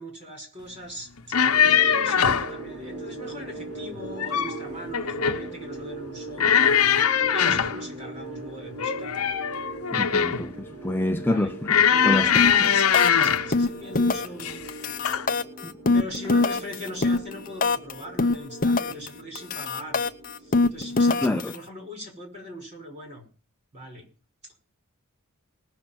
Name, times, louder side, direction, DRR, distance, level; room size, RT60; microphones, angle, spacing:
voice 1, 0.0-1.4 1.8-6.8 7.3-9.3 11.2-11.5 11.9-14.7 15.9-20.0 20.4-23.2 23.7-24.1, equal, 30° right, 5.6 m, -40 dB
sound 1, 1.2-2.5 4.0-4.6 4.9-5.5 6.4-7.8 8.8-10.5 11.7-13.5 14.4-14.7 15.0-15.3, left 8 dB, 70° left, 0.9 m, -21 dB
sound 2, 1.5-21.4, right 2 dB, 70° right, 4.0 m, -40 dB
voice 2, 9.9-12.3 12.6-12.7 15.6-15.7 21.1-21.5, left 1 dB, 10° left, 0.5 m, -27 dB
sound 3, 12.4-12.7 12.9-13.3 13.5-14.4 14.7-17.9 18.2-19.1 19.4-21.6, left 3 dB, 40° left, 0.8 m, -23 dB
19.0 x 6.6 x 5.9 m
head